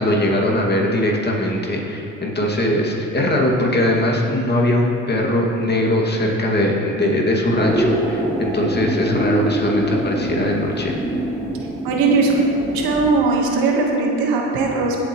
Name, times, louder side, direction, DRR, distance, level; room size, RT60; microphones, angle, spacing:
voice 1, 0.0-11.0, left 1 dB, 30° left, -2 dB, 2.2 m, -20 dB
sound 1, 7.6-13.1, right 1 dB, ahead, 1.7 m, -24 dB
voice 2, 11.8-12.4 12.7-15.0, right 3 dB, 80° right, 0 dB, 1.5 m, -19 dB
16.5 x 7.8 x 3.1 m, 3.0 s
supercardioid pair, 70°, 35 cm